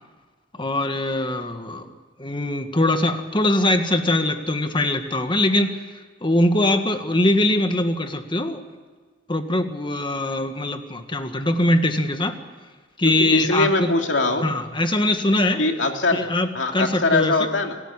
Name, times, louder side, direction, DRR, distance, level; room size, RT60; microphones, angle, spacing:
voice 1, 0.6-1.9 2.2-8.6 9.3-12.4 13.0-13.9 14.4-15.6 16.1-17.5, left 1 dB, 25° left, 7 dB, 1.8 m, -22 dB
voice 2, 13.0-14.5 15.6-16.3 16.5-17.8, left 2 dB, 80° left, 3 dB, 2.7 m, -22 dB
28.0 x 13.5 x 9.8 m, 1.4 s
head